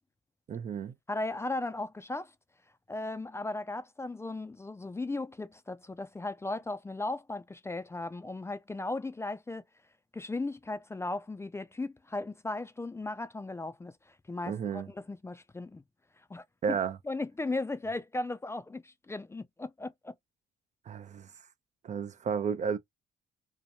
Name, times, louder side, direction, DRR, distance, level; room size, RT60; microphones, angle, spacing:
voice 1, 0.5-0.9 14.5-14.9 16.6-17.0 20.9-21.3 21.8-22.8, right 7 dB, 40° right, 0.5 m, -32 dB
voice 2, 1.1-2.3 2.9-9.6 10.1-15.8 16.3-16.8 17.1-20.1, left 2 dB, 15° left, 0.4 m, -36 dB
2.7 x 2.1 x 2.8 m
supercardioid pair, 65°, 18 cm